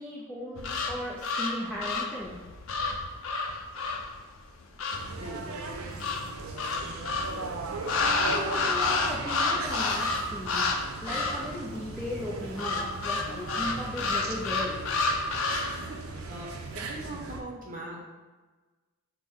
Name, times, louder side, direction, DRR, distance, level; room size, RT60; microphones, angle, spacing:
voice 1, 0.0-2.4 8.2-14.8, left 1 dB, 5° left, -6 dB, 0.5 m, -37 dB
sound 1, 0.6-5.1 6.0-7.4 7.9-10.8 11.0-11.5 12.6-15.8, left 3 dB, 70° left, 0.5 m, -29 dB
sound 2, 4.9-17.4, right 3 dB, 85° right, 0.5 m, -38 dB
voice 2, 16.7-18.0, right 1 dB, 40° right, -2 dB, 0.8 m, -40 dB
6.0 x 2.1 x 3.5 m, 1.3 s
head